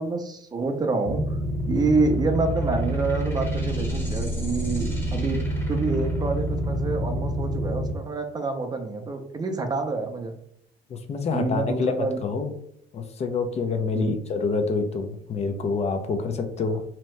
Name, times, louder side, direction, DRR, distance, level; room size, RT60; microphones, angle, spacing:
voice 1, 0.0-1.4 1.7-10.3 11.3-12.2 13.9-14.1, right 3 dB, 25° right, 5 dB, 0.4 m, -27 dB
sound 1, 1.0-7.9, equal, 15° left, 0.8 m, -27 dB
voice 2, 10.9-12.5 12.9-16.8, left 4 dB, 40° left, 6 dB, 0.4 m, -27 dB
2.8 x 2.1 x 3.1 m, 0.68 s
cardioid pair, 110°, 17 cm